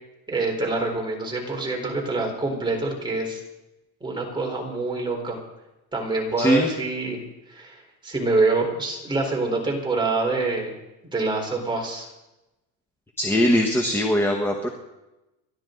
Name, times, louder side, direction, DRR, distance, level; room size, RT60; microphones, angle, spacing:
voice 1, 0.3-3.4 4.0-5.4 5.9-7.2 7.5-7.8 8.0-10.7 11.1-12.1, right 3 dB, 10° right, 0 dB, 4.2 m, -25 dB
voice 2, 6.4-6.7 13.2-14.7, left 1 dB, 5° left, 3 dB, 1.5 m, -21 dB
29.5 x 12.0 x 3.9 m, 0.98 s
cardioid pair, 145°, 43 cm